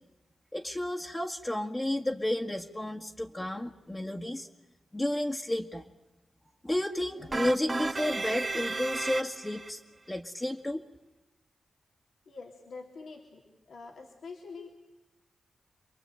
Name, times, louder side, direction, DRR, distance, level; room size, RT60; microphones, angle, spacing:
voice 1, 0.5-4.5 4.9-5.8 6.6-9.8 10.1-10.8, left 1 dB, 20° left, 0 dB, 1.9 m, -32 dB
sound 1, 7.3-9.7, right 3 dB, 45° right, 1.5 m, -33 dB
voice 2, 12.3-13.4 13.7-14.7, left 4 dB, 80° left, 0 dB, 3.1 m, -45 dB
28.0 x 22.0 x 9.1 m, 0.98 s
supercardioid pair, 40°, 0 cm